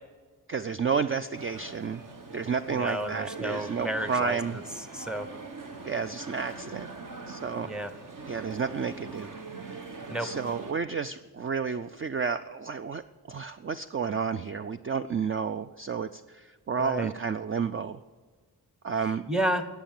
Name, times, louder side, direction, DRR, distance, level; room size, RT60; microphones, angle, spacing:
voice 1, 0.5-2.0 2.3-4.6 5.9-6.9 7.3-7.7 8.3-9.3 9.7-9.8 10.2-18.0 18.8-19.2, right 6 dB, 35° right, 10 dB, 0.4 m, -31 dB
sound 1, 1.3-10.7, right 4 dB, 55° right, 1.5 m, -42 dB
voice 2, 2.7-5.3 7.6-7.9 10.1-10.3 16.8-17.1 19.3-19.7, right 1 dB, ahead, 10 dB, 0.9 m, -32 dB
19.0 x 7.2 x 7.5 m, 1.5 s
wide cardioid pair, 160°, 39 cm